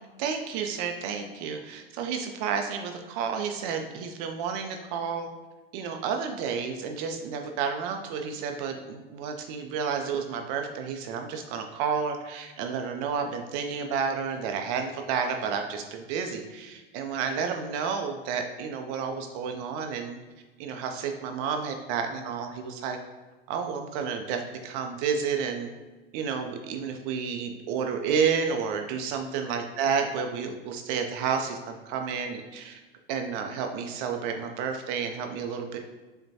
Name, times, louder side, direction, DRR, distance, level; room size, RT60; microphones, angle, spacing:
voice 1, 0.2-5.3 5.7-20.2 20.6-23.0 23.5-25.7 26.1-32.8 33.1-35.8, right 6 dB, 45° right, 4 dB, 0.4 m, -31 dB
5.3 x 2.2 x 2.7 m, 1.2 s
hypercardioid pair, 100°, 29 cm